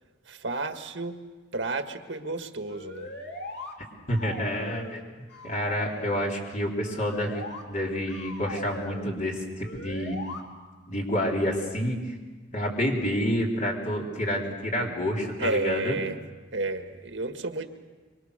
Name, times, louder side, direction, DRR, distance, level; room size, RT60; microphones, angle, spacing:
voice 1, 0.3-1.2 1.5-3.1 15.4-16.2 16.5-17.7, right 3 dB, 75° right, 6 dB, 1.7 m, -31 dB
sound 1, 2.7-3.7 4.1-5.0 5.3-6.3 6.8-7.6 8.1-9.1 9.6-10.4, left 1 dB, 60° left, 3.3 m, -39 dB
voice 2, 4.1-5.0 5.4-10.2 10.9-12.1 12.5-16.0, equal, 45° left, -1 dB, 3.9 m, -28 dB
25.0 x 24.5 x 6.7 m, 1.3 s
head